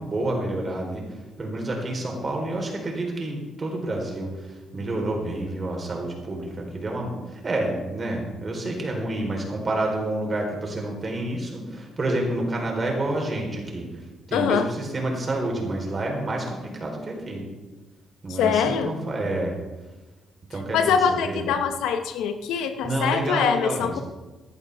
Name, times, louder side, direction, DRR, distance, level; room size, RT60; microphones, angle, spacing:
voice 1, 0.0-17.5 18.2-19.5 20.5-21.5 22.8-24.0, right 1 dB, 35° right, 0 dB, 3.9 m, -29 dB
voice 2, 14.3-14.7 18.4-18.9 20.7-24.0, left 7 dB, 90° left, 8 dB, 1.0 m, -23 dB
15.5 x 11.0 x 3.5 m, 1.2 s
cardioid pair, 90°, 0 cm